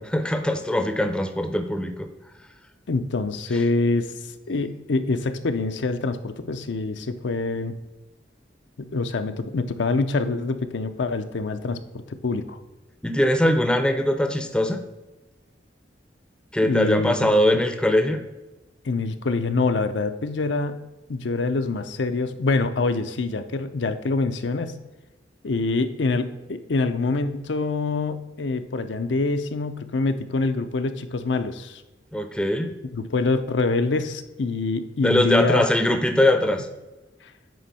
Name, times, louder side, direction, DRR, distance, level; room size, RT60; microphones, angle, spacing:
voice 1, 0.1-2.1 3.5-3.6 13.0-14.8 16.5-18.2 32.1-32.7 35.0-36.7, left 1 dB, 5° left, 7 dB, 0.5 m, -21 dB
voice 2, 2.9-4.1 4.5-7.7 8.8-12.6 16.6-17.6 18.8-20.8 21.1-24.8 25.4-31.8 32.9-35.7, left 3 dB, 75° left, 8 dB, 0.5 m, -25 dB
9.3 x 4.4 x 4.2 m, 1.1 s
head